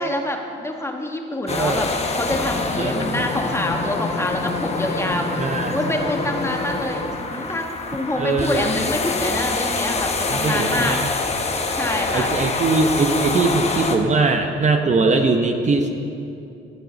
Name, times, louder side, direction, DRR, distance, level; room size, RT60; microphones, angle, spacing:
voice 1, 0.0-1.9 2.1-11.0 11.7-12.3, left 1 dB, 15° left, 2 dB, 1.3 m, -26 dB
sound 1, 1.5-14.0, left 3 dB, 35° left, 1.2 m, -26 dB
voice 2, 1.5-1.8 2.8-3.2 5.4-5.8 8.2-8.7 10.3-11.1 12.1-15.9, right 3 dB, 35° right, 5 dB, 0.8 m, -21 dB
sound 2, 2.9-7.4, left 3 dB, 80° left, 2.1 m, -33 dB
13.5 x 6.7 x 6.3 m, 2.7 s
cardioid pair, 90°, 20 cm